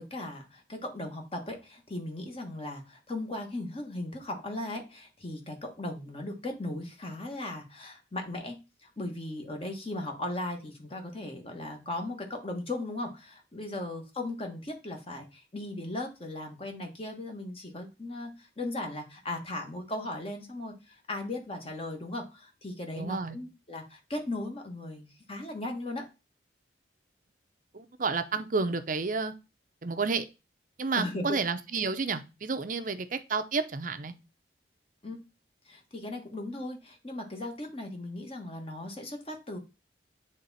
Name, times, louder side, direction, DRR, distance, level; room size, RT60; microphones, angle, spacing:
voice 1, 0.0-8.6 8.8-26.0 31.0-31.3 35.0-35.2 35.7-39.6, left 2 dB, 30° left, 3 dB, 1.5 m, -37 dB
voice 2, 23.0-23.4 27.7-29.3 29.8-30.3 30.8-34.1, right 4 dB, 45° right, 9 dB, 0.6 m, -30 dB
8.0 x 3.6 x 4.1 m, 0.28 s
head